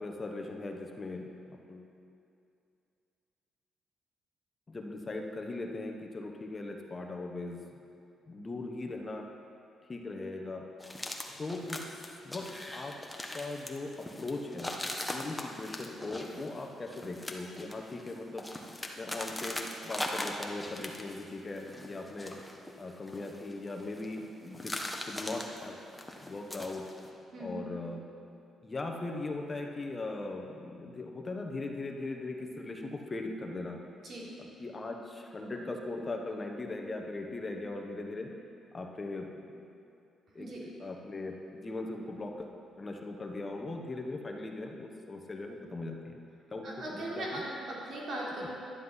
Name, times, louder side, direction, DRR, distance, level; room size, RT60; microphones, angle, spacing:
voice 1, 0.0-1.9 4.7-7.6 8.3-9.3 9.9-10.7 11.4-11.8 12.2-12.9 13.3-14.7 15.1-18.5 19.0-22.4 22.8-25.8 26.2-26.9 27.4-28.0 28.6-33.8 34.4-38.3 38.7-39.6 40.3-42.5 42.8-46.2 46.5-47.4 48.4-48.5, left 2 dB, 30° left, 2 dB, 1.2 m, -39 dB
sound 1, 10.8-21.3 21.6-24.2 24.5-27.1, left 1 dB, 10° left, 1.2 m, -41 dB
voice 2, 27.3-27.7 34.0-34.2 40.4-40.6 46.6-48.5, right 1 dB, 60° right, -5 dB, 3.6 m, -39 dB
11.5 x 10.5 x 5.7 m, 2.5 s
cardioid pair, 90°, 0 cm